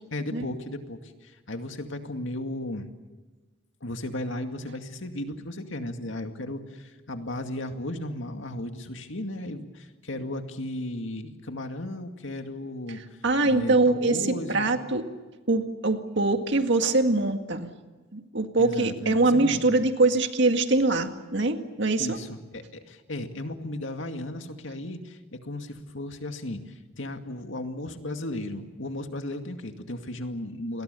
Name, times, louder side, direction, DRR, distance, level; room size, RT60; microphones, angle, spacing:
voice 1, 0.1-2.9 3.8-13.2 13.4-14.7 18.6-19.8 22.0-30.8, left 1 dB, 70° left, 6 dB, 2.3 m, -35 dB
voice 2, 13.2-15.1 15.5-17.7 18.1-22.2, right 2 dB, 60° right, 6 dB, 2.0 m, -23 dB
29.0 x 21.5 x 7.0 m, 1.3 s
head